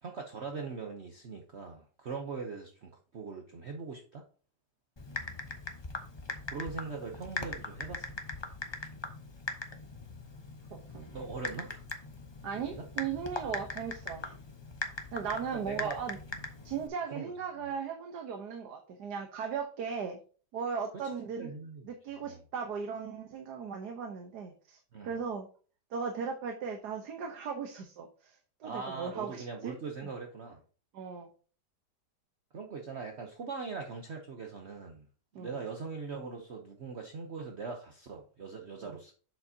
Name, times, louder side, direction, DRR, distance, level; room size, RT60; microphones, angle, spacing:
voice 1, 0.0-4.2 6.5-8.1 11.1-11.8 12.5-12.8 15.5-16.0 16.3-16.4 17.1-17.7 21.4-21.9 22.2-22.4 24.9-25.2 28.6-30.6 32.5-35.1 35.4-39.1, right 4 dB, 50° right, 2 dB, 1.0 m, -41 dB
Typing, 5.0-16.9, left 2 dB, 25° left, 0.6 m, -41 dB
voice 2, 10.7-11.1 12.4-14.2 15.1-16.2 16.6-20.2 20.5-21.5 21.8-25.5 25.9-29.8 30.9-31.3 35.3-35.6 38.8-39.0, right 6 dB, 70° right, 3 dB, 1.5 m, -37 dB
7.7 x 6.8 x 2.8 m, 0.38 s
omnidirectional pair, 1.8 m